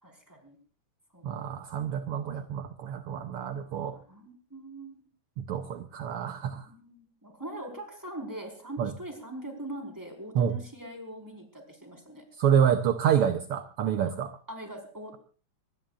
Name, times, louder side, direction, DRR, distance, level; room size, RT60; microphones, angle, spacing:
voice 1, 0.0-0.6 1.1-1.2 3.3-5.0 6.5-12.2 14.5-15.2, right 1 dB, 5° right, 3 dB, 4.6 m, -42 dB
voice 2, 1.2-4.0 5.4-6.7 8.8-8.9 10.3-10.5 12.4-14.3, right 8 dB, 65° right, 7 dB, 1.5 m, -27 dB
24.5 x 20.5 x 2.5 m, 0.39 s
omnidirectional pair, 3.4 m